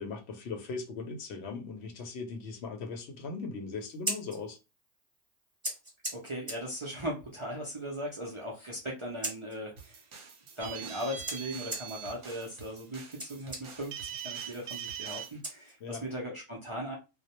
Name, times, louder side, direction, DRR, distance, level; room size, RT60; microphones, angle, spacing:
voice 1, 0.0-4.6 15.8-16.0, left 4 dB, 70° left, 0.8 m, -39 dB
Scissors, 3.8-16.2, right 1 dB, 20° right, 0.8 m, -44 dB
voice 2, 6.1-10.0 10.6-17.0, equal, 40° right, 0.4 m, -38 dB
sound 1, 9.8-15.4, right 4 dB, 60° right, 0.8 m, -52 dB
sound 2, 10.6-12.1 13.9-15.3, right 9 dB, 90° right, 0.9 m, -40 dB
2.2 x 2.0 x 2.8 m
omnidirectional pair, 1.2 m